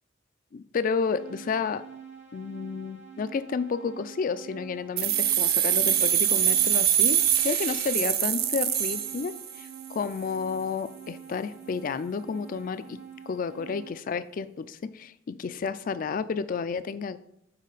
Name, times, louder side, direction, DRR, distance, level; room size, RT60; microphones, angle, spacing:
voice 1, 0.5-1.8 2.3-13.0 13.3-17.2, left 5 dB, 45° left, 14 dB, 0.3 m, -31 dB
sound 1, 1.0-13.9, right 7 dB, 70° right, 1.7 m, -47 dB
sound 2, 5.0-9.7, right 10 dB, 55° right, 0.5 m, -24 dB
7.3 x 4.1 x 3.9 m, 0.78 s
head